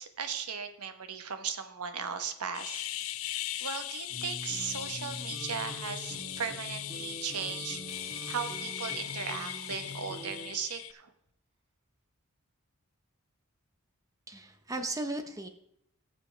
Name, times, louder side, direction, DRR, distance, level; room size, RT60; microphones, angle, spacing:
voice 1, 0.0-3.1 3.6-7.8 8.3-11.1, right 6 dB, 85° right, 8 dB, 1.1 m, -37 dB
sound 1, 2.5-10.9, left 13 dB, 65° left, 0.5 m, -39 dB
sound 2, 4.1-10.5, equal, ahead, 3.1 m, -44 dB
sound 3, 7.9-10.8, right 3 dB, 45° right, 4.1 m, -51 dB
voice 2, 14.3-15.5, right 2 dB, 15° right, 7 dB, 0.7 m, -36 dB
17.0 x 7.0 x 3.3 m, 0.74 s
head